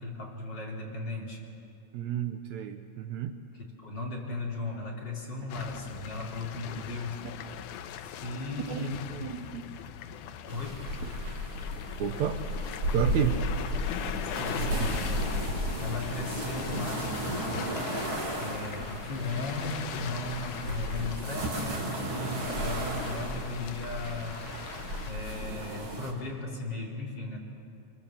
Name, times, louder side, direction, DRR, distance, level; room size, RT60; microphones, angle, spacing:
voice 1, 0.0-1.4 3.8-7.2 8.0-9.3 10.5-10.9 14.2-15.3 15.8-17.7 18.4-24.5 25.1-27.4, left 2 dB, 35° left, -2 dB, 3.7 m, -36 dB
voice 2, 1.9-3.4 8.7-9.7 12.0-12.4 12.9-13.4 14.9-15.0, right 10 dB, 70° right, 7 dB, 2.0 m, -31 dB
sound 1, 5.5-25.1, left 9 dB, 90° left, 2.3 m, -41 dB
sound 2, 10.5-26.1, right 1 dB, 40° right, 3.2 m, -34 dB
24.5 x 23.5 x 7.3 m, 2.5 s
omnidirectional pair, 3.5 m